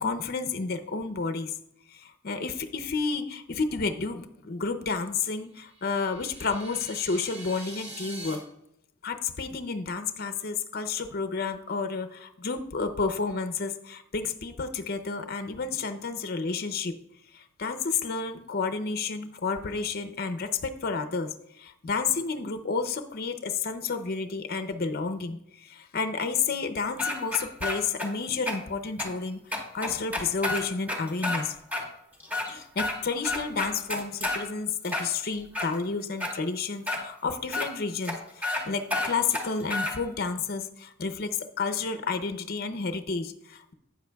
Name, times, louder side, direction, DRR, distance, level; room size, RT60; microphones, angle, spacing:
voice 1, 0.0-1.5 1.9-8.4 9.0-16.9 17.3-31.6 32.5-41.3 41.6-43.7, left 4 dB, 45° left, 8 dB, 0.6 m, -31 dB
sound 1, 5.6-8.4, right 2 dB, 30° right, 2.7 m, -43 dB
sound 2, 27.0-28.1 28.5-28.6 29.0-29.1 29.5-31.4 31.7-31.8 32.2-33.0 33.2-34.4 34.8-35.7 36.2-36.3 36.9-37.0 37.5-37.7 38.0-38.1 38.4-38.6 38.9-39.9, left 2 dB, 5° right, 1.4 m, -30 dB
12.5 x 8.8 x 2.3 m, 0.80 s
head